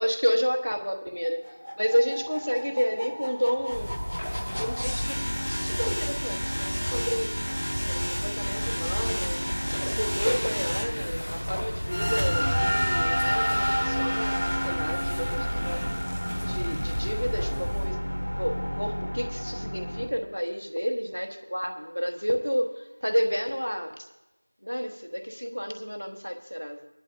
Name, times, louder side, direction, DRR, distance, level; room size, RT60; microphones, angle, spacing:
voice 1, 0.0-1.4 1.8-7.3 7.9-9.4 9.7-15.8 16.4-18.0 18.3-24.1 24.6-26.9, equal, 45° left, 4 dB, 1.1 m, -30 dB
sound 1, 1.2-20.1, equal, 80° left, 1.3 m, -30 dB
sound 2, 3.7-17.9, equal, 10° left, 0.5 m, -35 dB
19.5 x 11.0 x 2.7 m, 0.94 s
figure-of-eight pair, 180°, 0 cm